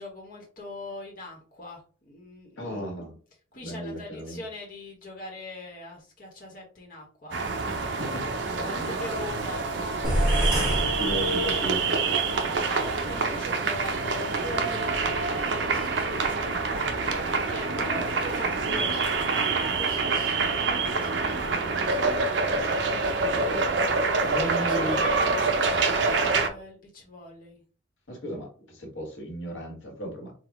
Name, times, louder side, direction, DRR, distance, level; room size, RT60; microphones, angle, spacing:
voice 1, 0.0-3.1 3.5-7.4 8.4-10.1 11.2-11.8 12.5-16.9 17.5-22.2 24.1-27.6, left 1 dB, 45° left, -1 dB, 1.1 m, -41 dB
voice 2, 2.6-3.2 3.6-4.4 7.6-8.3 8.6-8.9 10.7-12.2 17.9-18.0 22.9-23.7 24.2-25.1 28.1-30.3, right 1 dB, 75° left, 2 dB, 1.4 m, -36 dB
sound 1, 7.3-26.5, right 4 dB, 65° right, 0.6 m, -26 dB
sound 2, 10.0-11.9, equal, 5° right, 1.3 m, -26 dB
3.9 x 2.2 x 4.5 m, 0.40 s
head